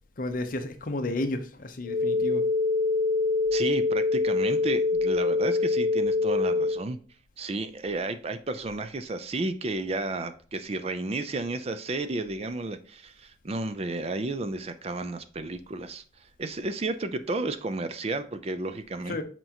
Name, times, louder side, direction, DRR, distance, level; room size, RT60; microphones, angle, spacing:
voice 1, 0.2-2.5 19.1-19.2, left 2 dB, 45° left, 0.7 m, -32 dB
sound 1, 1.8-6.8, left 3 dB, 10° right, 2.0 m, -25 dB
voice 2, 3.5-7.0 7.4-16.0 16.4-19.2, right 2 dB, 35° right, 0.4 m, -32 dB
7.8 x 4.4 x 2.9 m
head